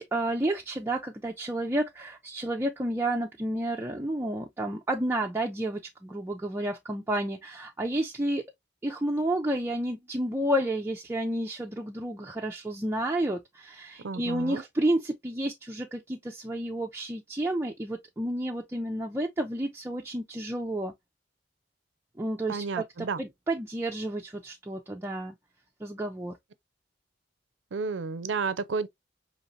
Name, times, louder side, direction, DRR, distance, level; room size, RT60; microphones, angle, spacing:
voice 1, 0.0-8.4 8.8-20.9 22.2-25.3 25.8-26.4, right 1 dB, 15° right, 0.5 m, -31 dB
voice 2, 14.0-14.6 22.5-23.2 27.7-28.9, right 4 dB, 80° right, 0.5 m, -31 dB
5.3 x 2.9 x 2.5 m
head